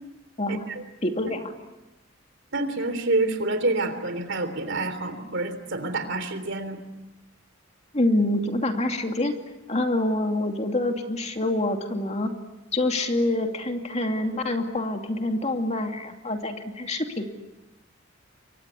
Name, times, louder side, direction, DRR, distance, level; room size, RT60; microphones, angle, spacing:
voice 1, 0.5-0.8 1.3-1.4 2.5-6.8, right 2 dB, 65° right, 10 dB, 3.3 m, -27 dB
voice 2, 1.0-1.5 7.9-9.3 9.7-12.3 12.7-17.2, left 1 dB, 35° left, 4 dB, 2.6 m, -26 dB
28.5 x 23.5 x 8.4 m, 1.0 s
head